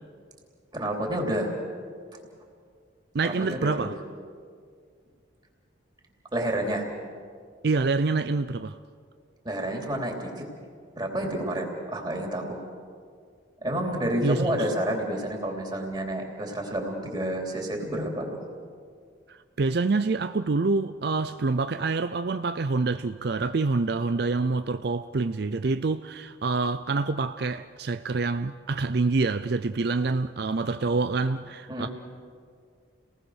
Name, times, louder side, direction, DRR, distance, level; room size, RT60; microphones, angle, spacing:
voice 1, 0.7-1.5 3.2-3.9 6.3-6.9 9.4-10.4 11.0-12.6 13.6-18.4 31.7-31.9, right 1 dB, 25° right, 3.2 m, -29 dB
voice 2, 3.1-4.0 7.6-8.8 14.2-14.7 19.3-31.9, right 3 dB, 55° right, 0.5 m, -26 dB
30.0 x 19.0 x 6.4 m
head